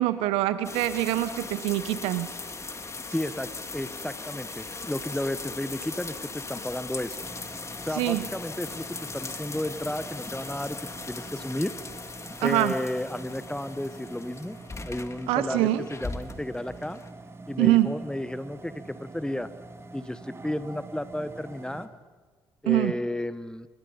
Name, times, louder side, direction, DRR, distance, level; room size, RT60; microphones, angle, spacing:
voice 1, 0.0-2.3 7.9-8.3 12.4-12.7 15.3-15.8 17.6-17.9 22.6-22.9, right 15 dB, 75° right, 13 dB, 0.9 m, -24 dB
sound 1, 0.6-17.1, left 3 dB, 30° left, 1.9 m, -39 dB
voice 2, 3.1-7.2 7.8-10.8 11.1-11.7 12.4-14.6 14.8-17.0 17.5-19.5 19.9-21.9 22.6-23.7, left 1 dB, 10° left, 13 dB, 1.3 m, -32 dB
sound 2, 7.2-21.9, right 3 dB, 25° right, 2.7 m, -45 dB
28.0 x 23.0 x 5.6 m, 1.4 s
hypercardioid pair, 50°, 10 cm